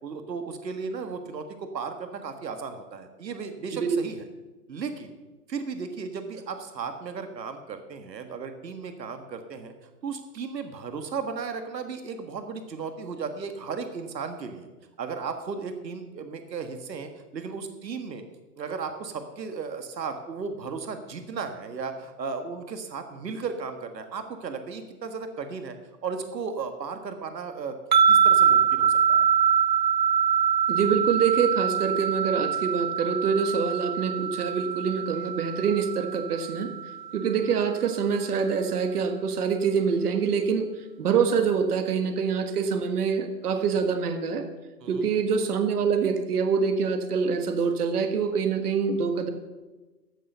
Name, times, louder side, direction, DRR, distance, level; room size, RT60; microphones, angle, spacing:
voice 1, 0.0-4.3 4.7-5.1 5.5-9.7 10.0-14.7 15.0-18.2 18.6-25.8 26.0-27.8 28.1-29.3 44.8-45.1, right 5 dB, 85° right, 7 dB, 1.6 m, -35 dB
sound 1, 27.9-37.2, right 8 dB, 30° right, 0.4 m, -24 dB
voice 2, 30.7-36.7 37.1-40.7 41.0-44.4 44.9-49.3, right 6 dB, 65° right, 7 dB, 1.7 m, -25 dB
14.5 x 6.9 x 6.7 m, 1.2 s
hypercardioid pair, 150°, 49 cm